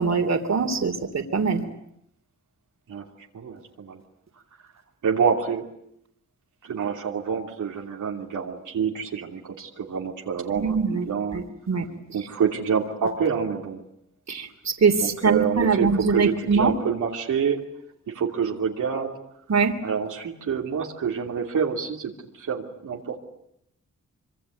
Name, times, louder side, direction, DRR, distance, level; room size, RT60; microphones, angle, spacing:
voice 1, 0.0-1.6 10.6-11.0 11.3-11.9 14.3-16.7 19.5-19.7, right 5 dB, 60° right, 6 dB, 3.2 m, -22 dB
voice 2, 3.3-4.0 5.0-5.6 6.6-11.4 12.1-13.8 15.0-17.6 18.1-19.2 19.8-23.2, right 6 dB, 90° right, 0 dB, 3.0 m, -27 dB
25.0 x 24.5 x 9.4 m, 0.76 s
cardioid pair, 60°, 30 cm